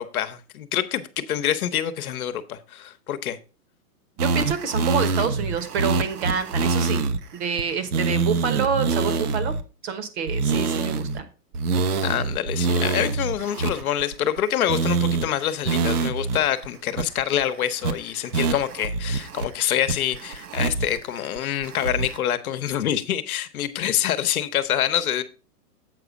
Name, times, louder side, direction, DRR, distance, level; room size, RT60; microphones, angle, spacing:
voice 1, 0.0-3.4 12.0-25.2, left 10 dB, 60° left, 1.0 m, -26 dB
voice 2, 4.2-7.0 7.3-9.5 9.8-11.3, right 6 dB, 40° right, 1.3 m, -27 dB
sound 1, 4.2-7.2 7.6-7.7 7.9-9.6 10.3-11.2 11.5-14.4 14.7-15.2 15.6-16.4 16.6-16.7 17.0-17.4 17.8-17.9 18.3-19.5 19.9-21.0 21.4-22.2, right 4 dB, 65° right, 1.0 m, -25 dB
7.9 x 4.9 x 5.1 m
hypercardioid pair, 150°, 49 cm